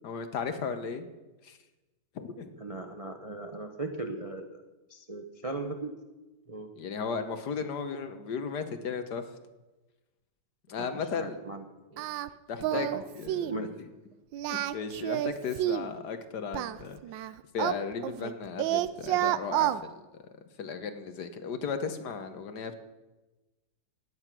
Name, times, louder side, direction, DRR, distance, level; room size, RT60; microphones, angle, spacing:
voice 1, 0.0-1.1 1.4-1.6 2.1-2.6 6.8-9.3 10.7-11.4 12.5-13.9 14.5-17.0 17.5-20.0 20.6-22.8, left 5 dB, 65° left, 9 dB, 1.6 m, -35 dB
voice 2, 2.6-4.6 4.9-5.9 6.5-6.7 10.7-11.6 11.9-12.0 12.7-13.0 13.4-13.7, right 2 dB, 35° right, 4 dB, 0.6 m, -38 dB
Singing, 12.0-12.3 12.6-13.0 13.3-13.6 14.3-15.9 16.5-18.3 18.6-19.8, right 13 dB, 85° right, 1.3 m, -29 dB
16.0 x 9.6 x 6.0 m, 1.1 s
omnidirectional pair, 2.0 m